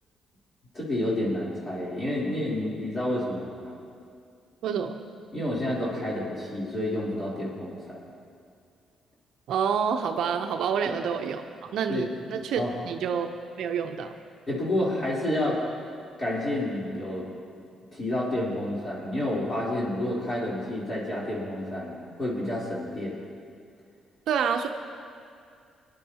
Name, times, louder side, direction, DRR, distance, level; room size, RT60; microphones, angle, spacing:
voice 1, 0.7-3.7 5.3-8.0 10.8-11.0 11.9-12.1 12.6-12.7 14.5-15.6 16.2-17.2 17.9-23.2, left 1 dB, 30° left, -6 dB, 3.5 m, -29 dB
voice 2, 4.6-5.0 9.5-13.3 13.6-14.1 24.3-24.7, right 7 dB, 75° right, 6 dB, 0.6 m, -28 dB
23.0 x 10.5 x 2.9 m, 2.4 s
cardioid pair, 90°, 0 cm